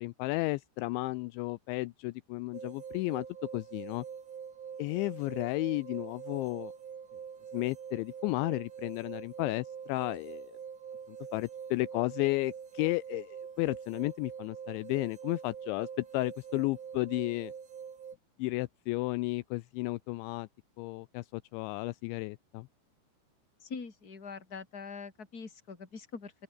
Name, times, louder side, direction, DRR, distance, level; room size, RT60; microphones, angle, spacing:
voice 1, 0.0-3.3 3.5-4.1 4.8-6.7 7.5-10.6 11.3-15.9 16.1-17.5 18.4-20.5 20.8-22.7, left 22 dB, 85° left, 2.6 m, -33 dB
sound 1, 2.5-18.2, right 7 dB, 55° right, 5.9 m, -45 dB
voice 2, 23.6-26.3, left 5 dB, 20° left, 3.1 m, -43 dB
open air
omnidirectional pair, 5.8 m